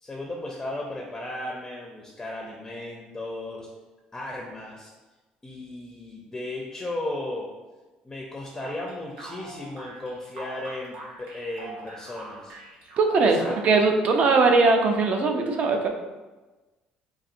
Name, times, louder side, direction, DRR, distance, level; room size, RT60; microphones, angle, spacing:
voice 1, 0.0-3.7 4.1-4.9 5.4-7.5 8.0-12.5 13.3-13.6, left 1 dB, 15° left, -1 dB, 0.5 m, -35 dB
sound 1, 8.6-13.9, right 2 dB, 75° right, 0.8 m, -43 dB
voice 2, 13.0-13.4 13.6-15.9, right 3 dB, 50° right, 4 dB, 0.5 m, -20 dB
4.0 x 2.5 x 2.5 m, 1.2 s
cardioid pair, 105°, 3 cm